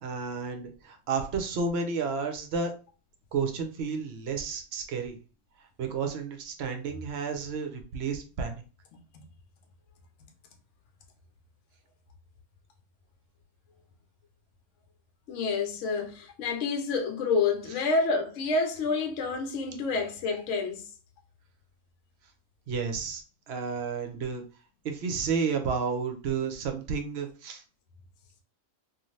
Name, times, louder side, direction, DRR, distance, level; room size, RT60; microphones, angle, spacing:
voice 1, 0.0-2.7 3.3-5.2 5.8-8.6 22.7-24.4 24.8-27.6, right 5 dB, 65° right, 0.7 m, -31 dB
voice 2, 15.3-20.8, left 4 dB, 70° left, 0.9 m, -28 dB
2.6 x 2.4 x 3.1 m
omnidirectional pair, 1.4 m